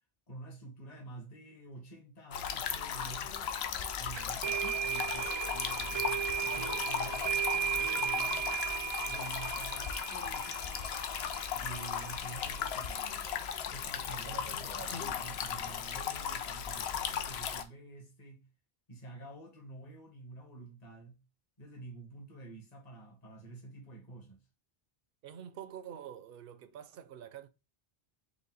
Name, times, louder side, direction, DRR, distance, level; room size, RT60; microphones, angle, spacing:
voice 1, 0.3-3.4 4.0-8.5 9.0-10.9 11.5-13.3 13.7-18.5 18.9-21.2 21.6-24.4, right 2 dB, 40° left, 1.3 m, -49 dB
sound 1, 2.3-17.6, left 8 dB, 80° left, 0.8 m, -37 dB
sound 2, 4.2-13.0, right 8 dB, 50° right, 0.3 m, -36 dB
voice 2, 14.2-15.0 25.2-27.5, right 9 dB, 70° right, 0.7 m, -47 dB
5.1 x 2.2 x 3.8 m
omnidirectional pair, 1.0 m